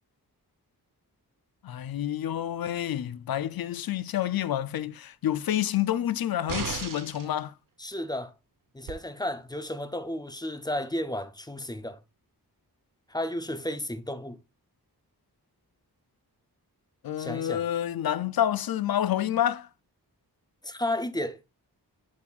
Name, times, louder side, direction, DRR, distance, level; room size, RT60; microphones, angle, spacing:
voice 1, 1.6-7.5 17.0-19.7, left 11 dB, 65° left, 0.5 m, -28 dB
sound 1, 6.5-7.3 8.9-9.0, right 6 dB, 55° right, 0.9 m, -34 dB
voice 2, 7.8-8.3 8.7-12.0 13.1-14.4 17.2-17.6 20.6-21.4, left 1 dB, 10° left, 0.6 m, -33 dB
7.6 x 7.3 x 2.4 m
wide cardioid pair, 140°, 39 cm